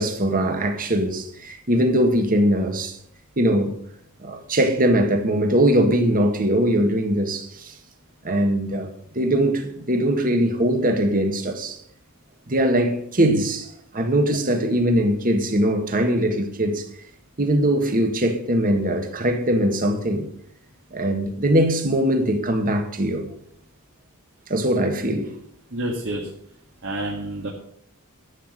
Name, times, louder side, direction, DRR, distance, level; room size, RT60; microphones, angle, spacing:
voice 1, 0.0-3.0 3.4-3.8 4.2-7.8 8.2-8.9 9.1-11.8 12.5-16.9 17.4-20.3 20.9-23.3 24.5-25.3, right 1 dB, 40° right, 1.7 m, -21 dB
voice 2, 25.7-26.3 26.8-27.5, right 1 dB, 55° right, 1.9 m, -28 dB
11.5 x 8.0 x 6.6 m
head